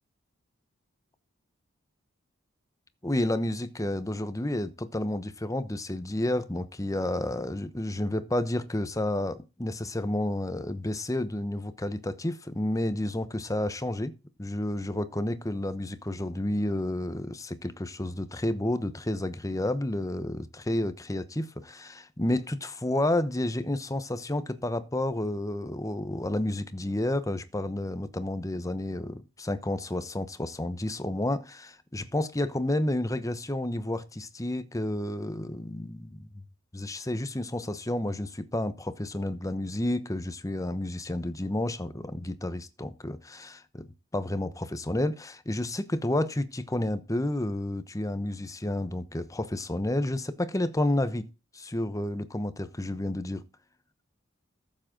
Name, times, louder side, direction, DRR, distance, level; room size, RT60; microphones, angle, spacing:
voice 1, 3.0-14.1 14.4-36.3 36.7-43.9 44.1-51.3 51.5-53.4, left 1 dB, 15° left, 1.0 m, -30 dB
13.5 x 7.6 x 3.9 m
head